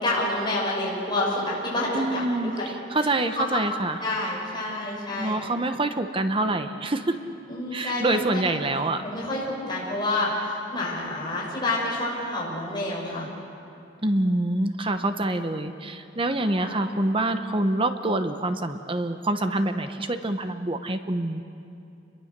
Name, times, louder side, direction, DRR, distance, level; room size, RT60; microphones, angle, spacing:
voice 1, 0.0-2.7 3.0-3.1 3.3-3.4 4.0-5.4 7.5-13.3 16.4-16.8, left 2 dB, 25° left, -5 dB, 6.6 m, -29 dB
voice 2, 1.9-2.5 2.9-4.0 5.2-7.2 7.7-9.0 14.0-21.4, right 2 dB, 25° right, 8 dB, 0.9 m, -26 dB
28.0 x 22.5 x 6.7 m, 2.7 s
head